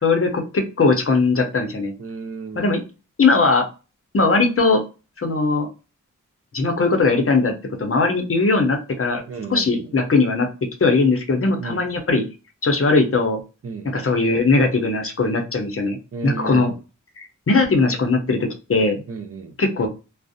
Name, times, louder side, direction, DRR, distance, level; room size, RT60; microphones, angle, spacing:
voice 1, 0.0-1.9 2.6-2.8 3.2-3.7 4.1-4.8 5.2-5.7 6.5-9.2 9.5-10.5 10.8-12.2 12.6-13.4 13.9-16.0 16.2-16.7 17.2-19.0 19.6-19.9, left 3 dB, 45° left, 0.6 m, -19 dB
voice 2, 2.0-2.8 9.3-10.0 11.6-12.1 13.6-14.1 16.1-16.8 19.1-19.6, right 4 dB, 45° right, 0.4 m, -33 dB
2.4 x 2.0 x 2.6 m
wide cardioid pair, 100°, 32 cm